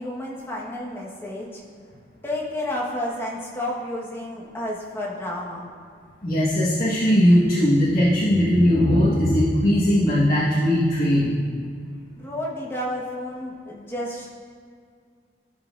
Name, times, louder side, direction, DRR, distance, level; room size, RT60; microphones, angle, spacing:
voice 1, 0.0-1.6 2.2-5.7 12.2-14.3, left 1 dB, 15° left, -4 dB, 1.1 m, -31 dB
voice 2, 6.2-11.3, equal, 50° left, -10 dB, 1.3 m, -19 dB
15.0 x 5.6 x 2.4 m, 2.2 s
head